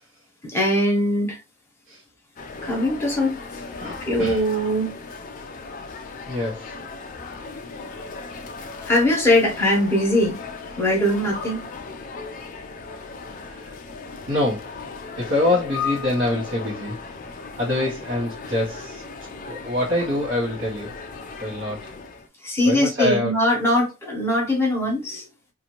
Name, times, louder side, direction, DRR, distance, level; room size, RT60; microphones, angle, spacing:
voice 1, 0.4-1.4 2.6-3.4 4.0-4.9 8.6-10.4 10.8-11.7 22.4-25.2, left 1 dB, 10° left, 1.0 m, -21 dB
sound 1, 2.4-22.3, left 4 dB, 35° left, 0.4 m, -36 dB
voice 2, 3.8-4.4 6.3-6.7 13.4-13.7 14.3-14.7 15.2-17.0 17.6-19.0 19.4-21.0 21.4-21.9 22.6-23.3, left 1 dB, 45° right, 1.0 m, -25 dB
2.7 x 2.5 x 2.9 m
head